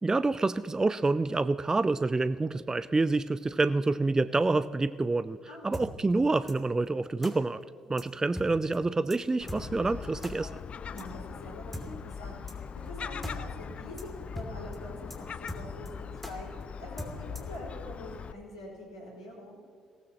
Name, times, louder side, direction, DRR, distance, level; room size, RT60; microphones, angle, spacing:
voice 1, 0.0-5.4 5.6-7.6 7.9-10.5, right 3 dB, 20° right, 15 dB, 0.5 m, -27 dB
voice 2, 5.5-5.9 7.8-8.0 10.9-12.6 12.9-14.0 14.3-19.6, left 1 dB, 85° left, -5 dB, 4.8 m, -45 dB
sound 1, 5.7-5.9 6.5-6.6 7.2-7.3 8.0-8.1 8.4-8.5 8.7-8.8 9.1-9.2 9.5-9.6 10.2-10.3 11.0-11.1 11.7-11.9 12.5-12.6 12.9-13.0 13.2-13.4 13.6-13.7 14.0-14.1 14.4-14.5 14.7-14.8 15.1-15.2 15.5-15.9 16.2-16.3 17.0-17.6, left 1 dB, 5° left, 2.7 m, -39 dB
Gull seagull, 9.4-18.3, left 6 dB, 40° left, 0.5 m, -41 dB
24.0 x 18.0 x 3.0 m, 2.2 s
figure-of-eight pair, 50°, 3 cm